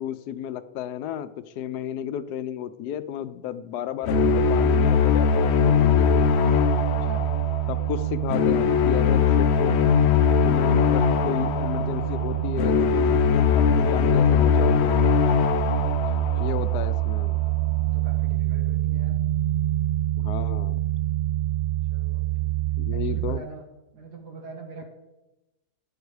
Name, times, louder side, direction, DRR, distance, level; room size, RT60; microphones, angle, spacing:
voice 1, 0.0-6.3 7.7-9.8 10.4-15.0 16.4-17.4 20.2-20.9 22.8-23.4, left 10 dB, 80° left, 13 dB, 1.2 m, -33 dB
sound 1, 4.0-17.1, left 10 dB, 60° left, 0.7 m, -22 dB
sound 2, 4.1-23.4, right 15 dB, 75° right, 0.6 m, -26 dB
voice 2, 6.9-7.3 16.0-16.6 17.8-19.1 21.9-22.6 22.9-23.6 23.9-24.8, right 3 dB, 90° right, 3 dB, 2.6 m, -43 dB
13.0 x 9.5 x 4.8 m, 1.0 s
omnidirectional pair, 1.7 m